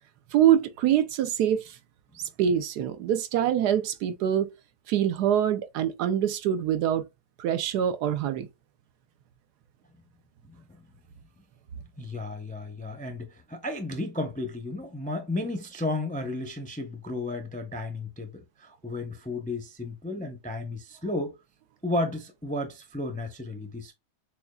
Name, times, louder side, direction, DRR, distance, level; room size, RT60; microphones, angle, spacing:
voice 1, 0.3-1.8 2.4-4.5 4.9-7.1 7.4-8.5, right 10 dB, 90° right, 1.3 m, -24 dB
voice 2, 12.0-21.3 21.8-23.9, left 2 dB, 10° left, 0.4 m, -33 dB
7.0 x 2.3 x 2.3 m
omnidirectional pair, 1.7 m